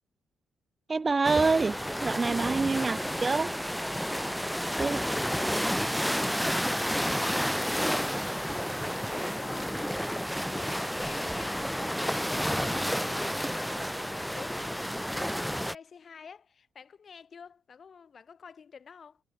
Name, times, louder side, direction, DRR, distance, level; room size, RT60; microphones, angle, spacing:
voice 1, 0.9-3.5 4.8-5.0, right 4 dB, 30° right, 0.6 m, -26 dB
sound 1, 1.2-15.8, equal, ahead, 1.3 m, -31 dB
voice 2, 2.6-2.9 4.7-6.5 6.9-19.2, left 6 dB, 45° left, 7.5 m, -49 dB
cardioid pair, 90°, 0 cm